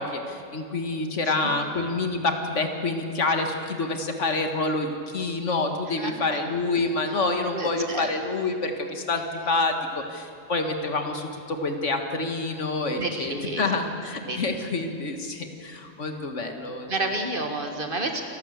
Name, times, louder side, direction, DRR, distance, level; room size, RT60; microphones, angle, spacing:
voice 1, 0.0-17.1, left 3 dB, 70° left, 5 dB, 2.0 m, -27 dB
voice 2, 6.0-6.4 7.5-8.1 13.0-13.6 14.3-14.5 16.9-18.2, right 2 dB, 45° right, 4 dB, 1.9 m, -30 dB
28.5 x 12.5 x 8.1 m, 2.4 s
omnidirectional pair, 1.3 m